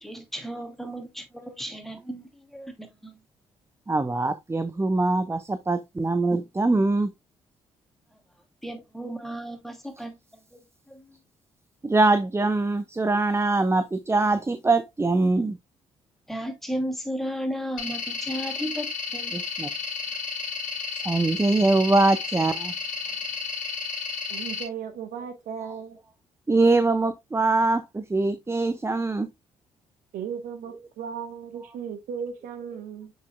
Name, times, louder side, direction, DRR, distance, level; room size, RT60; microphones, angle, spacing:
voice 1, 0.0-3.2 8.1-8.2 8.6-10.2 10.5-11.2 16.3-19.4, equal, ahead, 2.5 m, -34 dB
voice 2, 3.9-7.1 11.8-15.6 19.3-19.7 21.0-22.7 26.5-29.3, right 2 dB, 15° right, 0.8 m, -23 dB
sound 1, 17.8-24.6, left 4 dB, 60° left, 2.1 m, -32 dB
voice 3, 24.3-26.0 30.1-33.1, right 7 dB, 65° right, 1.1 m, -36 dB
7.7 x 5.5 x 2.2 m
hypercardioid pair, 45°, 15 cm